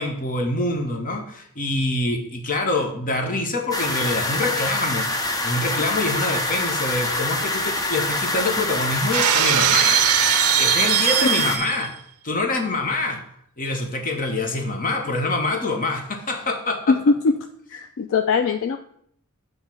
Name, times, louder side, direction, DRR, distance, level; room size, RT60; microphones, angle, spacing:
voice 1, 0.0-10.0 10.6-11.9 12.2-13.2 13.6-16.9, left 2 dB, 40° left, 5 dB, 1.0 m, -25 dB
sound 1, 3.7-11.6, left 2 dB, 15° left, 0.6 m, -25 dB
Shatter, 9.1-11.9, right 12 dB, 75° right, 0.4 m, -20 dB
voice 2, 16.9-17.3 17.7-18.8, left 4 dB, 60° left, 7 dB, 0.4 m, -20 dB
7.5 x 3.2 x 6.0 m, 0.67 s
head